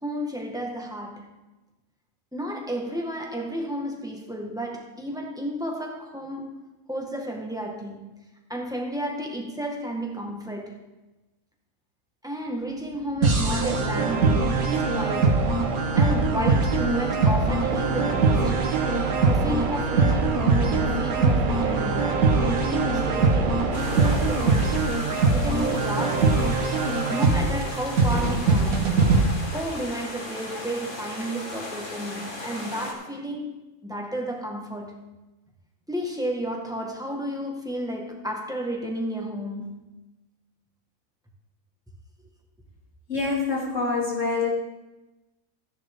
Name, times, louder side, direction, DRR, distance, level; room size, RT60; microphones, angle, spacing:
voice 1, 0.0-1.3 2.3-6.6 6.9-8.2 8.5-10.9 12.2-15.5 15.9-18.6 19.2-22.2 22.4-24.9 25.3-26.5 27.1-29.2 29.5-35.1 35.9-39.9, equal, 5° right, 1.6 m, -32 dB
sound 1, 12.6-25.7, right 6 dB, 50° right, 0.6 m, -33 dB
sound 2, 13.2-29.2, right 3 dB, 85° right, 1.7 m, -22 dB
sound 3, 23.7-32.9, left 2 dB, 35° left, 1.8 m, -36 dB
voice 2, 43.1-44.5, left 4 dB, 60° left, 3.3 m, -25 dB
13.5 x 10.5 x 3.7 m
omnidirectional pair, 1.5 m